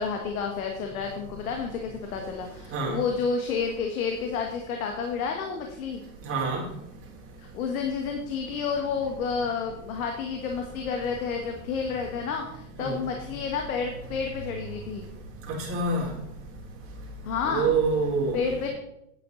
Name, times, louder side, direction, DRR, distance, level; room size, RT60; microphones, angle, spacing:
voice 1, 0.0-6.0 7.4-15.1 17.2-17.7 18.3-18.7, left 5 dB, 80° left, 3 dB, 1.7 m, -30 dB
voice 2, 6.2-6.6 12.8-12.9 15.7-16.0 17.4-18.4, right 4 dB, 30° right, -3 dB, 4.0 m, -25 dB
10.0 x 8.7 x 4.1 m, 0.81 s
supercardioid pair, 130°, 42 cm